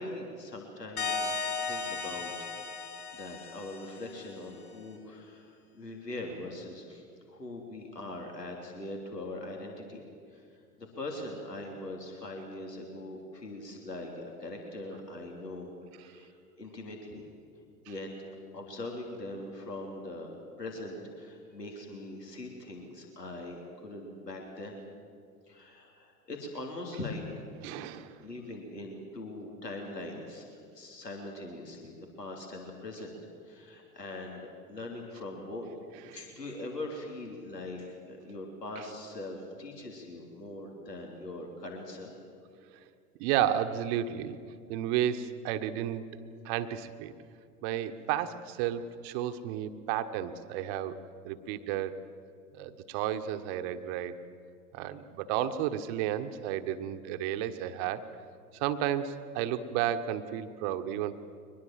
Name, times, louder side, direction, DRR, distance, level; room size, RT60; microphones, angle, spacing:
voice 1, 0.0-1.3 1.6-2.3 3.1-10.0 10.3-15.7 16.0-16.3 16.6-17.3 17.9-20.3 20.6-24.8 25.5-27.2 27.9-30.4 30.7-33.1 33.4-35.7 36.0-42.1, left 2 dB, 85° left, 1 dB, 3.2 m, -41 dB
sound 1, 1.0-4.4, left 4 dB, 65° left, 2.9 m, -35 dB
voice 2, 27.6-28.2 43.2-44.4 44.7-46.2 46.4-47.1 47.6-51.0 51.2-52.0 52.5-54.1 54.7-58.1 58.6-61.2, right 11 dB, 45° right, 10 dB, 1.4 m, -32 dB
23.5 x 20.5 x 7.5 m, 2.3 s
figure-of-eight pair, 90°, 47 cm